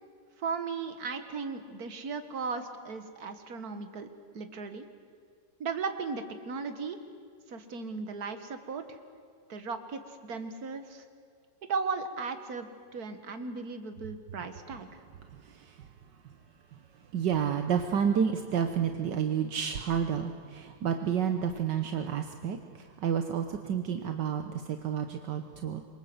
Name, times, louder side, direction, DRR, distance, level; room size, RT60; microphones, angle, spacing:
voice 1, 0.4-4.1 4.3-4.8 5.6-7.0 7.5-9.0 9.5-11.0 11.7-12.7 12.9-14.9, right 4 dB, 55° right, 8 dB, 2.1 m, -36 dB
voice 2, 15.4-15.8 17.1-25.8, right 8 dB, 75° right, 6 dB, 1.6 m, -30 dB
27.0 x 23.5 x 7.9 m, 2.2 s
omnidirectional pair, 2.0 m